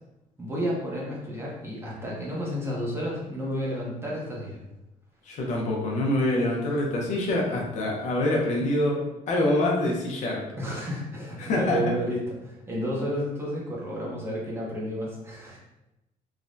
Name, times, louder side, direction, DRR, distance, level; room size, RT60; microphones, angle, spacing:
voice 1, 0.4-4.6 10.6-15.6, equal, 15° right, -4 dB, 0.6 m, -31 dB
voice 2, 5.2-9.0 9.3-10.4 11.4-11.8, left 1 dB, 55° left, -1 dB, 0.6 m, -25 dB
3.3 x 2.1 x 2.5 m, 0.94 s
cardioid pair, 170°, 14 cm